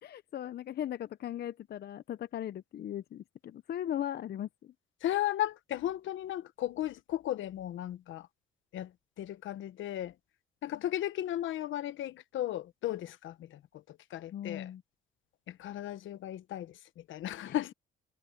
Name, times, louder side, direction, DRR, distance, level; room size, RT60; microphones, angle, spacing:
voice 1, 0.0-4.5 14.3-14.8 17.5-17.6, left 11 dB, 55° left, 0.6 m, -38 dB
voice 2, 5.0-8.3 8.7-8.9 9.2-10.1 10.6-14.7 15.5-17.7, left 12 dB, 75° left, 1.1 m, -35 dB
cardioid pair, 90°, 20 cm